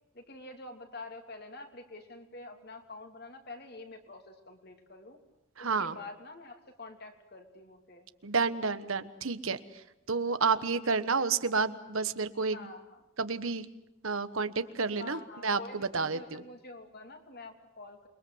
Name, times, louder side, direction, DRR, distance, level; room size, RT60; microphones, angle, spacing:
voice 1, 0.1-5.2 5.6-8.1 10.4-11.0 12.5-13.1 15.0-18.1, left 2 dB, 45° left, 5 dB, 3.0 m, -47 dB
voice 2, 5.6-5.9 8.2-9.6 10.1-12.6 13.2-13.6 14.0-15.6 15.9-16.4, right 4 dB, 70° right, 12 dB, 1.3 m, -30 dB
28.5 x 22.5 x 8.0 m, 0.89 s
head